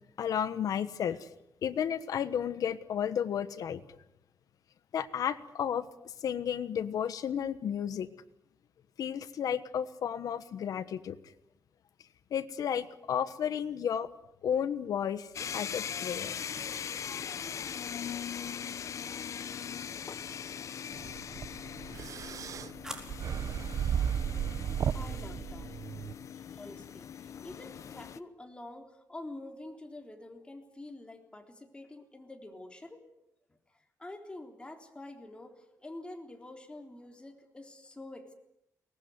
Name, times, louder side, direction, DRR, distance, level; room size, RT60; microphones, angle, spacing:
voice 1, 0.2-1.3 1.6-3.8 4.9-8.1 9.0-11.2 12.3-14.1 14.4-16.6, left 8 dB, 75° left, 12 dB, 1.2 m, -33 dB
sound 1, 15.3-28.2, left 8 dB, 55° left, 0.8 m, -40 dB
sound 2, 21.0-26.1, right 8 dB, 65° right, 0.8 m, -34 dB
sound 3, 21.6-23.7, right 1 dB, 10° right, 4.4 m, -49 dB
voice 2, 24.9-25.8 26.3-33.1 33.5-38.3, left 2 dB, 15° left, 4 dB, 3.6 m, -47 dB
23.0 x 19.0 x 9.6 m, 0.83 s
cardioid pair, 115°, 6 cm